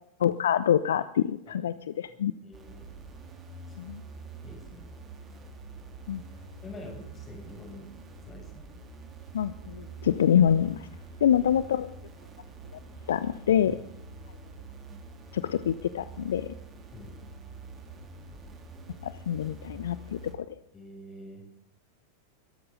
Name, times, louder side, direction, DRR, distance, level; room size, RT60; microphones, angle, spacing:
voice 1, 0.2-2.3 3.8-4.0 6.1-6.2 9.3-10.8 11.2-11.9 13.1-13.7 15.3-16.5 19.0-20.2, left 9 dB, 60° left, 15 dB, 0.6 m, -25 dB
voice 2, 1.5-1.8 2.1-2.9 3.7-3.9 4.4-4.8 6.6-7.9 8.3-8.7 11.4-11.5 13.7-13.8 16.9-17.1 20.7-21.4, left 2 dB, 20° left, 1 dB, 7.2 m, -47 dB
sound 1, 2.5-20.3, right 3 dB, 25° right, 3.5 m, -46 dB
23.0 x 13.5 x 3.9 m, 0.75 s
figure-of-eight pair, 90°, 0 cm